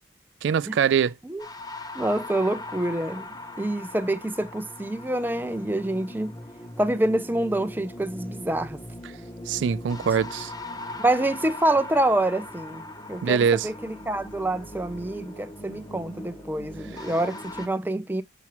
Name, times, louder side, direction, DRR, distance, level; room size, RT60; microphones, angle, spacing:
voice 1, 0.4-1.1 9.5-10.5 13.2-13.7, right 7 dB, 70° right, 0.3 m, -23 dB
sound 1, 1.4-17.7, left 2 dB, 20° left, 0.9 m, -40 dB
voice 2, 1.9-3.3 3.6-6.3 6.8-8.8 11.0-18.2, right 1 dB, 10° right, 0.5 m, -26 dB
7.0 x 5.9 x 3.0 m
head